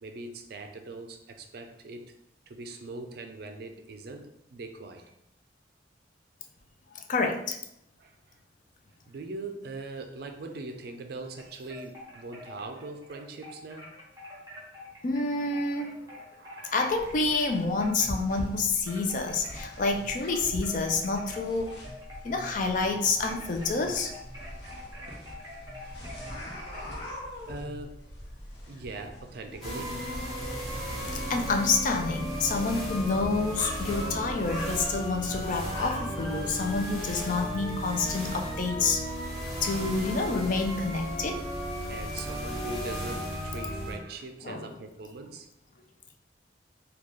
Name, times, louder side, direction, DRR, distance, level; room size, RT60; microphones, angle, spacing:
voice 1, 0.0-2.1 2.5-5.1 8.0-8.4 9.1-13.9 16.4-17.1 24.6-25.3 25.8-26.2 27.4-28.0 28.7-30.0 41.8-45.5, right 2 dB, 60° right, 6 dB, 0.4 m, -41 dB
voice 2, 6.9-7.6 15.0-16.0 16.7-21.7 22.2-24.1 31.1-39.1 39.6-41.4 44.4-44.8, left 3 dB, 45° left, 4 dB, 0.4 m, -28 dB
sound 1, 11.4-18.5 18.8-26.9, left 1 dB, 20° right, 1.0 m, -46 dB
sound 2, 16.9-36.8, equal, 70° left, 0.9 m, -42 dB
sound 3, 29.6-43.9, equal, ahead, 1.3 m, -35 dB
3.7 x 2.3 x 3.1 m, 0.78 s
head